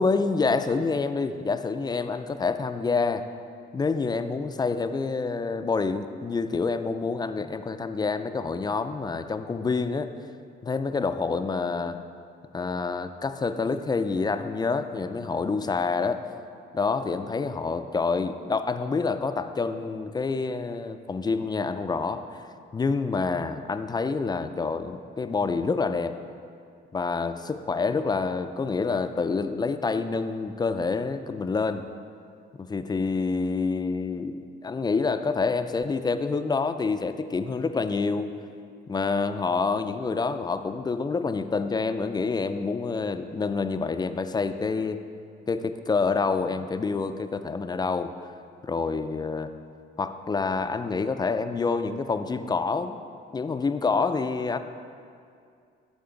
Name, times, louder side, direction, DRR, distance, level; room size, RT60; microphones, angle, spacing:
voice 1, 0.0-3.2 3.7-10.1 10.6-12.0 12.5-16.2 16.7-22.4 22.7-26.2 26.9-31.9 32.6-38.3 38.9-45.0 45.5-48.1 48.6-49.5 50.0-53.0 53.3-54.6, left 4 dB, 20° left, 9 dB, 0.3 m, -27 dB
12.5 x 4.2 x 3.8 m, 2.3 s
cardioid pair, 90°, 20 cm